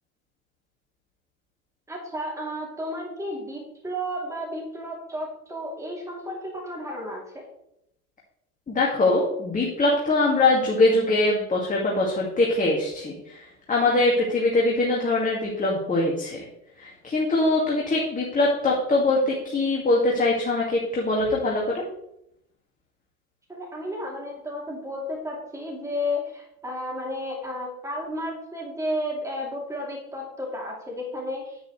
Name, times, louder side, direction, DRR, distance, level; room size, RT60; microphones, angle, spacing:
voice 1, 1.9-7.4 23.5-31.6, left 1 dB, 5° right, -2 dB, 2.9 m, -32 dB
voice 2, 8.7-13.1 13.7-16.4 16.8-21.8, left 2 dB, 15° left, -3 dB, 2.0 m, -22 dB
10.0 x 8.7 x 3.2 m, 0.80 s
figure-of-eight pair, 85°, 46 cm